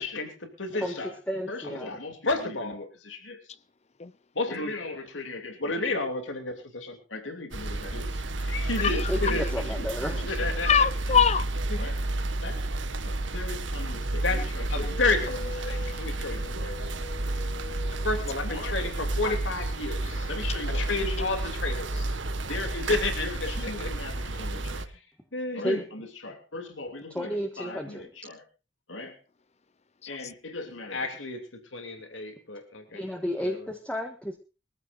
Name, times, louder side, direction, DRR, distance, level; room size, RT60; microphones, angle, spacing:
voice 1, 0.0-1.1 1.5-3.6 4.3-11.2 11.7-12.0 12.4-12.6 13.0-16.9 18.0-22.2 22.5-25.1 25.3-28.4 28.9-29.2 30.1-33.1 33.4-33.7, left 3 dB, 85° left, 2.9 m, -33 dB
voice 2, 1.3-1.9 9.1-10.3 25.6-25.8 27.1-28.1 32.9-34.4, equal, 5° left, 1.5 m, -32 dB
sound 1, 7.5-24.9, right 2 dB, 80° right, 1.6 m, -31 dB
voice 3, 10.7-11.5 14.8-15.0 15.6-16.1 16.4-18.0 19.2-19.3, left 7 dB, 35° left, 0.7 m, -27 dB
22.5 x 15.0 x 2.6 m
head